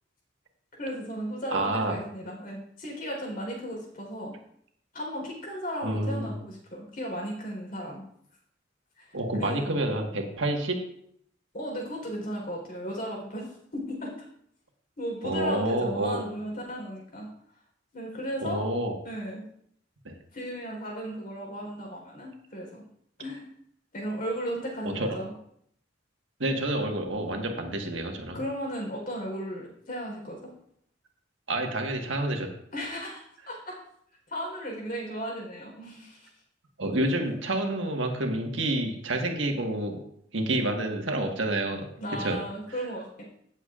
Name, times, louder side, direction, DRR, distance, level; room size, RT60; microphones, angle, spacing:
voice 1, 0.8-4.3 4.9-8.1 9.0-9.1 9.4-9.7 11.5-14.3 15.0-17.3 17.9-18.7 19.0-19.4 20.3-22.8 23.2-23.4 23.9-25.3 28.3-30.5 32.7-33.8 34.3-36.3 42.0-43.2, equal, 50° left, -1 dB, 4.0 m, -35 dB
voice 2, 1.5-2.0 5.8-6.3 9.1-10.8 15.2-16.2 18.4-18.9 20.0-20.1 24.8-25.2 26.4-28.4 31.5-32.5 36.8-40.0 40.3-41.9 42.2-42.4, right 1 dB, 85° right, 2 dB, 1.6 m, -28 dB
17.0 x 7.2 x 2.5 m, 0.70 s
head